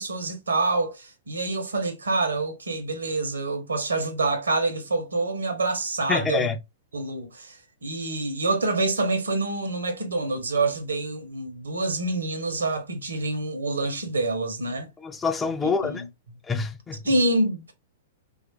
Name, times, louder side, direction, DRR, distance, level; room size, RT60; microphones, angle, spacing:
voice 1, 0.0-6.5 6.9-7.6 7.8-14.9 15.9-16.0 17.0-17.7, right 2 dB, 75° right, 0.7 m, -26 dB
voice 2, 6.1-6.6 15.0-16.0 16.4-17.1, left 5 dB, 15° left, 0.3 m, -26 dB
3.1 x 2.4 x 2.8 m
figure-of-eight pair, 105°, 0 cm